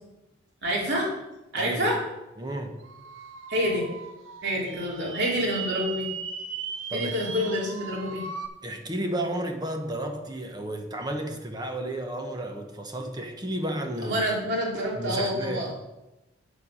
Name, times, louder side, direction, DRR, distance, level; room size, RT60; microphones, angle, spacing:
voice 1, 0.6-1.1 1.5-2.0 3.5-3.9 4.4-6.1 6.9-8.2 14.0-15.7, equal, 60° right, 3.0 m, -27 dB
voice 2, 1.6-1.9 2.4-2.8 6.9-7.5 8.6-14.3 15.0-15.7, right 1 dB, 20° right, 1.0 m, -32 dB
sound 1, 2.8-8.5, right 6 dB, 75° right, 0.9 m, -38 dB
8.9 x 7.5 x 5.5 m
head